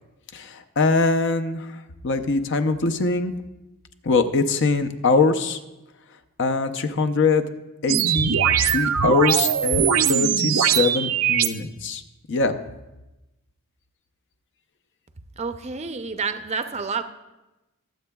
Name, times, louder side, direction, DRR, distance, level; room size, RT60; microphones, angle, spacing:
voice 1, 0.3-1.7 2.0-3.3 4.0-5.6 6.4-7.4 7.8-12.0 12.3-12.6, left 3 dB, 55° left, 8 dB, 0.6 m, -22 dB
sound 1, 7.9-11.5, right 9 dB, 80° right, 0.5 m, -21 dB
voice 2, 15.4-17.0, right 5 dB, 30° right, 8 dB, 0.5 m, -29 dB
21.5 x 7.7 x 2.3 m, 1.0 s
head